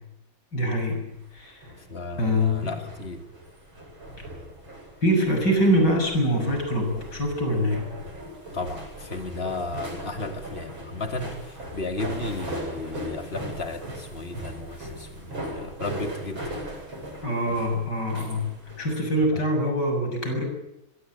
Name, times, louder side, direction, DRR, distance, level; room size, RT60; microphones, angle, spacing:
voice 1, 0.5-1.1 1.3-1.6 2.2-2.7 5.0-7.9 17.2-20.4, equal, 55° left, 4 dB, 7.6 m, -24 dB
sound 1, 1.1-19.0, right 1 dB, 70° right, 8.6 m, -39 dB
voice 2, 1.9-3.3 8.5-16.5 19.3-19.4, left 2 dB, 30° left, 6 dB, 2.7 m, -34 dB
24.0 x 22.5 x 8.8 m, 0.85 s
omnidirectional pair, 2.3 m